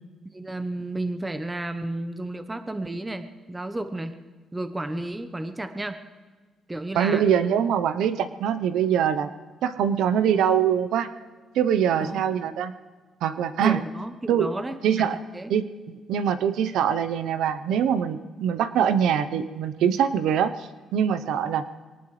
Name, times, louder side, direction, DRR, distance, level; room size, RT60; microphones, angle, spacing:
voice 1, 0.3-4.1 4.5-6.0 6.7-7.2 12.0-12.2 13.6-15.1 15.3-15.5, right 2 dB, 15° right, 9 dB, 1.0 m, -32 dB
voice 2, 6.9-9.3 9.6-11.1 11.5-12.7 13.2-13.8 14.3-14.5 14.8-15.2 15.5-21.6, right 8 dB, 85° right, 12 dB, 0.8 m, -23 dB
23.5 x 18.5 x 3.3 m, 1.4 s
cardioid pair, 90°, 0 cm